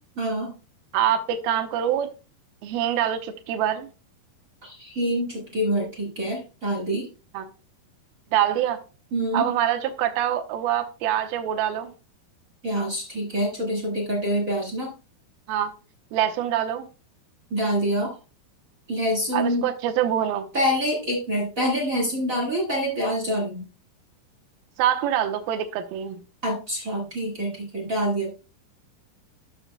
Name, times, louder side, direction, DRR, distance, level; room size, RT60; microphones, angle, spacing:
voice 1, 0.2-0.5 4.6-7.1 9.1-9.5 12.6-14.9 17.5-18.2 18.9-19.7 20.5-23.7 26.4-28.3, equal, 35° right, 1.3 m, -26 dB
voice 2, 0.9-2.1 2.6-3.9 7.3-7.5 8.3-8.8 9.3-11.9 15.5-15.7 16.1-16.9 19.3-20.5 24.8-26.2, right 10 dB, 80° right, 2.6 m, -25 dB
12.5 x 6.8 x 2.2 m
omnidirectional pair, 4.4 m